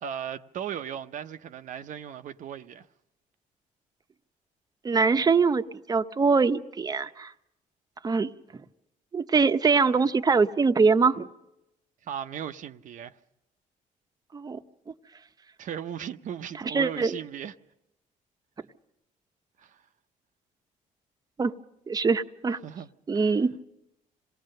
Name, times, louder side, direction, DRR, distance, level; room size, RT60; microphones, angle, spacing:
voice 1, 0.0-2.9 12.0-13.1 15.6-17.5 19.6-19.8 22.6-22.9 23.1-23.4, right 9 dB, 60° right, 0.7 m, -37 dB
voice 2, 4.8-7.3 8.0-8.3 9.1-11.3 14.3-14.6 16.6-17.2 21.4-21.5 21.9-22.6 23.1-23.5, right 4 dB, 25° right, 0.8 m, -23 dB
27.0 x 18.5 x 6.6 m
cardioid pair, 100°, 15 cm